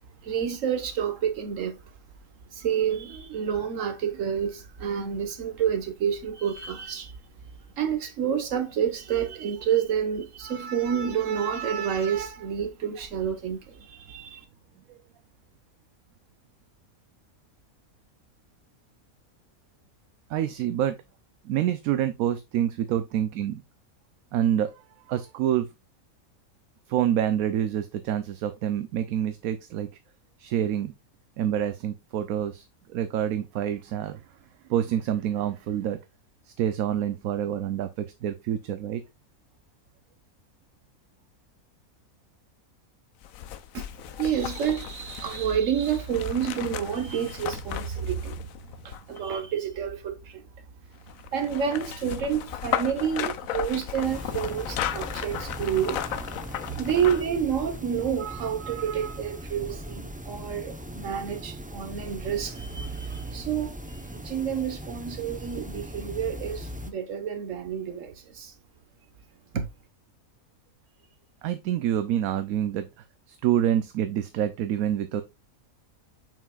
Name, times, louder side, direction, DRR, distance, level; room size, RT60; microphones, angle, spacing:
voice 1, 0.2-1.7 2.5-7.1 7.8-14.4 43.7-43.9 44.2-48.5 48.8-50.4 51.3-56.1 56.8-63.7 64.1-68.5 69.5-69.6, right 8 dB, 65° right, 1.5 m, -29 dB
voice 2, 20.3-20.9 21.4-23.6 24.3-24.7 25.1-25.7 26.9-29.9 30.4-30.9 31.4-34.2 34.7-36.0 36.6-39.0 71.4-72.9 73.3-75.2, right 10 dB, 80° right, 1.0 m, -27 dB
sound 1, 43.2-49.4 51.1-57.4 57.8-57.9, left 10 dB, 75° left, 1.0 m, -35 dB
sound 2, 54.0-66.9, equal, 10° right, 0.4 m, -39 dB
7.2 x 5.7 x 2.3 m
omnidirectional pair, 1.5 m